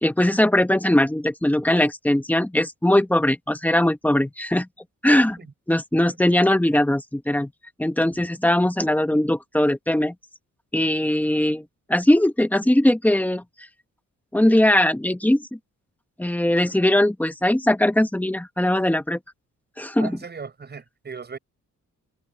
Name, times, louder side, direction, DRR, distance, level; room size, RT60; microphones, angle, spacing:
voice 1, 0.0-4.7 5.0-5.4 5.7-7.5 7.8-10.1 10.7-13.4 14.3-15.6 16.2-19.2 19.8-20.2, left 1 dB, 5° left, 1.2 m, -20 dB
voice 2, 20.0-21.4, right 5 dB, 35° right, 6.8 m, -37 dB
wide cardioid pair, 155°, 31 cm